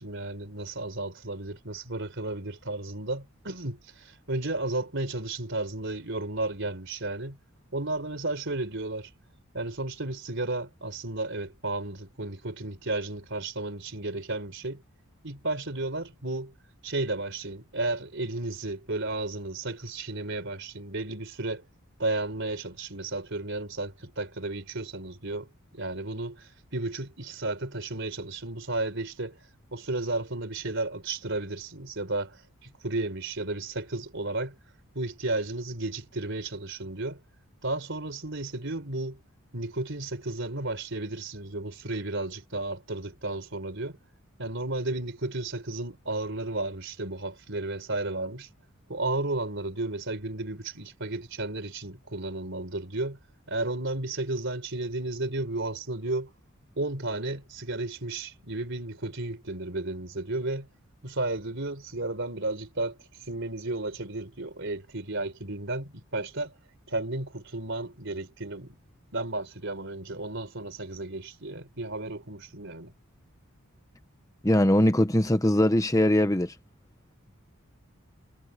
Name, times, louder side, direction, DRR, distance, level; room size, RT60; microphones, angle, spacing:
voice 1, 0.0-7.4 7.7-9.1 9.5-14.8 15.2-16.5 16.8-21.6 22.0-25.5 25.7-29.4 29.7-34.6 34.9-37.2 37.6-39.2 39.5-44.0 44.4-48.5 48.9-53.2 53.5-56.3 56.8-60.7 61.0-63.0 63.3-66.5 66.9-68.8 69.1-72.9, right 2 dB, 55° right, 4.2 m, -33 dB
voice 2, 74.4-76.5, left 1 dB, 15° left, 1.0 m, -21 dB
head